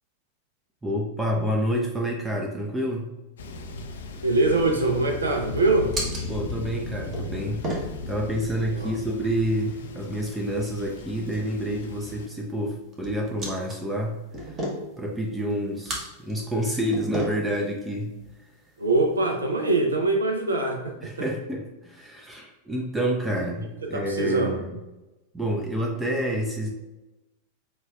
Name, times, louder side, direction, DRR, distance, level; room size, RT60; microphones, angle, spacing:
voice 1, 0.8-3.1 6.3-14.6 15.0-18.2 21.0-24.7 25.3-26.7, equal, 10° right, 0 dB, 0.4 m, -28 dB
Thunder, 3.4-12.3, left 3 dB, 65° left, 0.4 m, -37 dB
sound 1, 4.0-19.3, right 1 dB, 25° right, 0.9 m, -39 dB
voice 2, 4.2-5.9 8.7-8.9 18.8-21.1 23.9-24.6, right 2 dB, 75° right, 3 dB, 0.4 m, -23 dB
5.4 x 2.3 x 2.3 m, 1.1 s
figure-of-eight pair, 90°, 0 cm